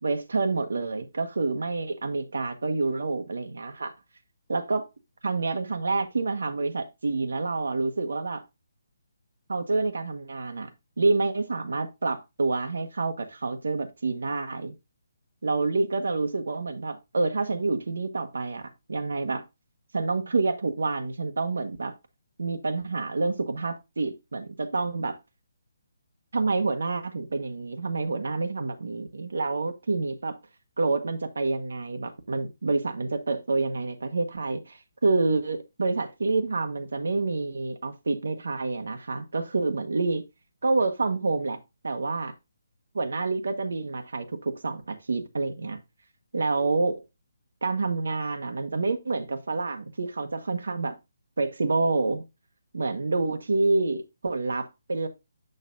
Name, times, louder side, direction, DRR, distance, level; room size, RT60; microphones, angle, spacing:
voice 1, 0.0-3.9 4.5-4.9 5.2-8.4 9.5-10.7 11.0-14.7 15.4-18.6 18.9-19.4 19.9-21.9 22.4-25.2 26.3-30.4 30.8-40.2 40.6-41.6 41.8-42.3 42.9-45.8 46.3-47.0 47.6-50.9 51.4-52.3 52.7-55.1, right 3 dB, 75° right, 1.3 m, -28 dB
7.8 x 6.6 x 2.5 m
hypercardioid pair, 180°, 0 cm